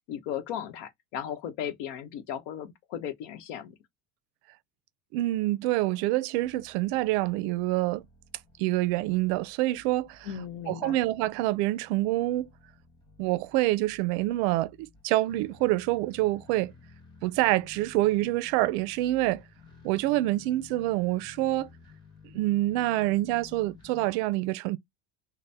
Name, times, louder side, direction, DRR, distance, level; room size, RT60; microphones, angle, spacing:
voice 1, 0.1-3.8 10.2-11.0, left 9 dB, 70° left, 0.9 m, -36 dB
voice 2, 5.1-8.0 8.6-10.3 10.7-12.5 13.2-16.7 17.2-19.4 19.8-21.7 22.3-24.8, right 17 dB, 75° right, 0.5 m, -26 dB
sound 1, 6.4-24.1, left 5 dB, 15° left, 0.8 m, -54 dB
4.1 x 2.1 x 3.3 m
cardioid pair, 175°, 33 cm